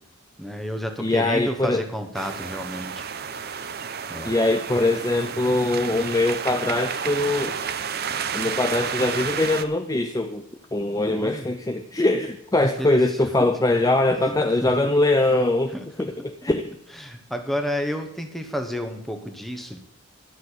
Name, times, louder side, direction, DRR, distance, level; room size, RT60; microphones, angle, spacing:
voice 1, 0.4-3.0 4.1-4.3 11.1-11.5 12.8-13.0 13.4-13.5 14.6-14.7 15.7-16.1 16.9-19.8, equal, ahead, 5 dB, 1.1 m, -31 dB
voice 2, 1.0-1.8 4.2-7.6 8.3-10.4 10.7-15.7 16.0-16.1 16.4-16.8, left 2 dB, 15° left, 7 dB, 0.5 m, -22 dB
sound 1, 2.1-9.6, right 7 dB, 50° right, 0.6 m, -31 dB
12.5 x 6.3 x 8.2 m, 0.79 s
head